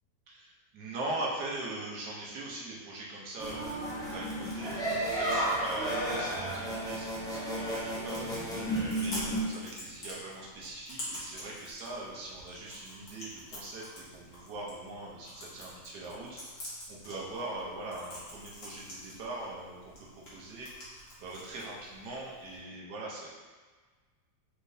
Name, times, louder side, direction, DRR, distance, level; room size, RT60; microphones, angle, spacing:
voice 1, 0.3-23.3, right 2 dB, 75° right, -4 dB, 1.5 m, -41 dB
sound 1, 3.4-9.4, right 1 dB, 5° left, 0.3 m, -33 dB
Chewing mastication, 8.6-22.6, left 1 dB, 60° left, 1.8 m, -47 dB
4.6 x 3.6 x 2.7 m, 1.4 s
omnidirectional pair, 1.8 m